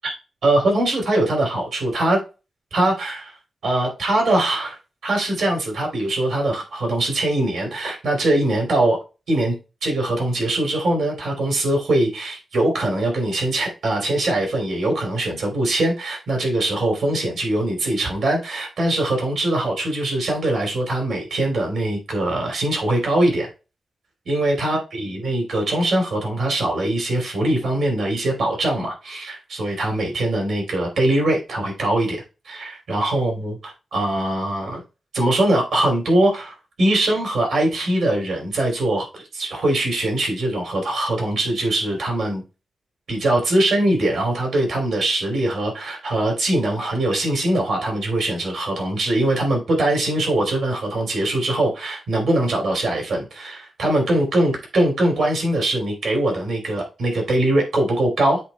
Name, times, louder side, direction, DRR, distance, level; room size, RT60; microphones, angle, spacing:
voice 1, 0.4-2.2 2.7-3.4 3.6-4.8 5.0-9.0 9.3-9.5 9.8-23.5 24.2-34.8 35.1-42.4 43.1-58.4, right 1 dB, 80° right, 1 dB, 3.2 m, -22 dB
7.8 x 3.4 x 4.2 m, 0.30 s
wide cardioid pair, 165°, 0 cm